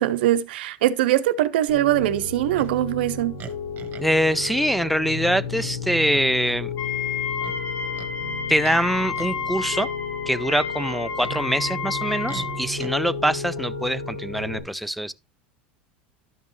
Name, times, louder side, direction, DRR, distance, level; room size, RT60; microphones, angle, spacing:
voice 1, 0.0-3.4, right 13 dB, 80° right, 0.6 m, -22 dB
Piano, 1.7-14.6, left 4 dB, 75° left, 5.2 m, -33 dB
Livestock farm animals working animals, 2.6-2.8 3.4-4.1 4.4-4.6 5.2-5.8 6.1-6.3 7.4-8.1 8.6-8.8 9.1-9.5 10.8-11.4 12.3-12.9, right 8 dB, 40° right, 1.2 m, -41 dB
voice 2, 4.0-6.7 8.5-9.9 10.3-15.1, equal, ahead, 0.3 m, -24 dB
Wind instrument woodwind instrument, 6.8-12.7, left 6 dB, 50° left, 1.9 m, -31 dB
12.0 x 5.2 x 3.0 m
hypercardioid pair, 100°, 5 cm